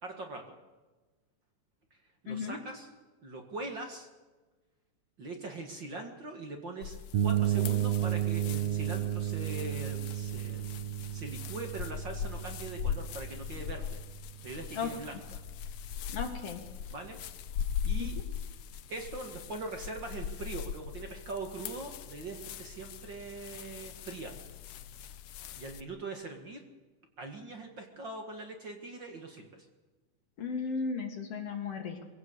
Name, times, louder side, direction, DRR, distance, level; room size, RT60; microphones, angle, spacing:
voice 1, 0.0-0.6 2.2-2.9 3.2-4.1 5.2-7.0 7.2-10.7 11.1-14.0 14.4-15.4 16.9-17.2 17.8-18.2 18.9-24.3 25.6-26.7 27.2-29.7, right 3 dB, 40° right, 4 dB, 2.2 m, -42 dB
voice 2, 2.3-2.6 14.7-14.9 16.1-16.6 18.0-18.1 30.4-32.0, left 5 dB, 55° left, 4 dB, 3.0 m, -35 dB
sound 1, 6.8-25.8, left 8 dB, 70° left, 1.5 m, -40 dB
sound 2, 7.1-14.9, right 12 dB, 60° right, 2.1 m, -33 dB
22.5 x 16.5 x 8.1 m, 1.3 s
omnidirectional pair, 3.5 m